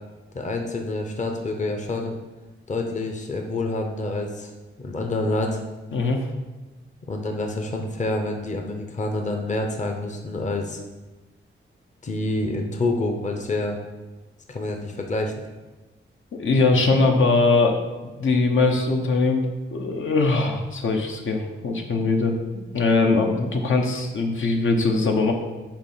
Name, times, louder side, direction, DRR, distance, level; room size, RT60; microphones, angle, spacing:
voice 1, 0.3-2.1 2.7-4.5 4.8-5.6 7.1-10.8 12.0-13.8 14.5-15.3, left 2 dB, 35° left, 3 dB, 0.8 m, -27 dB
voice 2, 5.9-6.2 16.3-17.8 18.2-19.5 19.7-22.4 22.7-25.3, left 3 dB, 70° left, 2 dB, 0.9 m, -21 dB
8.7 x 3.0 x 5.6 m, 1.2 s
wide cardioid pair, 120°, 21 cm